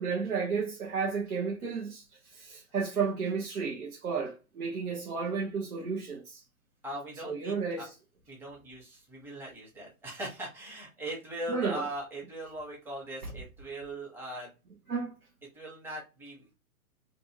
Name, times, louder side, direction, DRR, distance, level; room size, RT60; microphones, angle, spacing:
voice 1, 0.0-6.4 7.2-7.9 11.5-11.8 13.2-13.3 14.9-15.2, right 5 dB, 85° right, 0.9 m, -32 dB
voice 2, 6.8-7.9 8.3-14.5 15.5-16.6, right 1 dB, 5° right, 0.7 m, -40 dB
2.6 x 2.4 x 2.7 m
hypercardioid pair, 125°, 43 cm